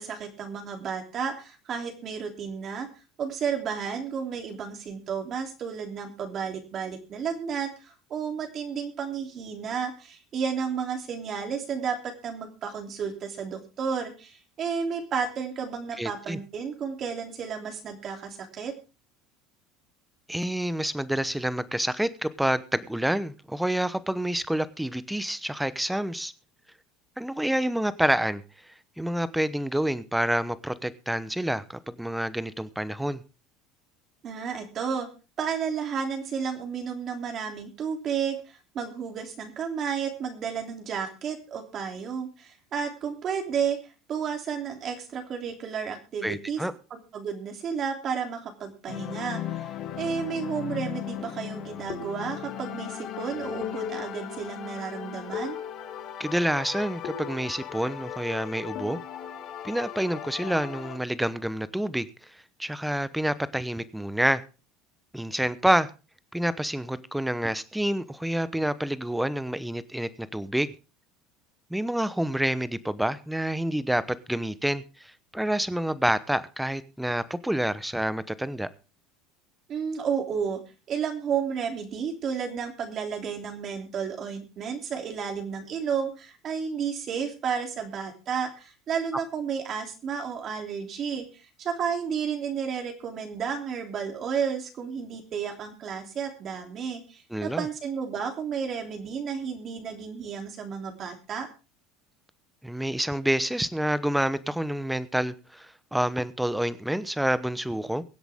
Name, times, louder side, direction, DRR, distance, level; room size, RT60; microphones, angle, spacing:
voice 1, 0.0-2.9 3.2-18.7 34.2-35.1 35.4-46.6 46.9-49.6 50.0-55.6 79.7-80.6 80.9-101.5, right 6 dB, 35° right, 4 dB, 3.1 m, -32 dB
voice 2, 16.0-16.4 20.3-26.3 27.2-28.4 29.0-33.2 46.2-46.7 56.2-59.0 59.6-62.1 62.6-64.4 65.1-65.9 66.3-70.7 71.7-78.7 97.3-97.7 102.6-108.0, right 1 dB, 5° right, 15 dB, 0.9 m, -28 dB
sound 1, 48.9-61.0, left 9 dB, 50° left, 2.8 m, -36 dB
23.5 x 8.1 x 3.6 m, 0.32 s
supercardioid pair, 135°, 0 cm